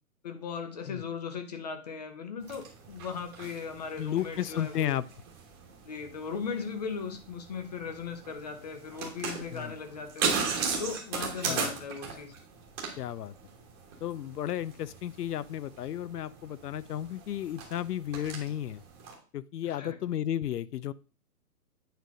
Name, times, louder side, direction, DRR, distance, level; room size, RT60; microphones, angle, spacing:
voice 1, 0.2-4.9 5.9-10.3 10.8-12.3 19.6-20.0, left 5 dB, 25° left, 7 dB, 0.7 m, -38 dB
sound 1, 2.4-19.1, right 5 dB, 15° right, 1.2 m, -38 dB
voice 2, 4.0-5.0 9.5-9.8 11.4-11.7 13.0-13.3 14.0-18.8 19.3-20.9, left 11 dB, 90° left, 18 dB, 0.5 m, -33 dB
9.1 x 3.3 x 5.0 m, 0.38 s
hypercardioid pair, 160°, 45 cm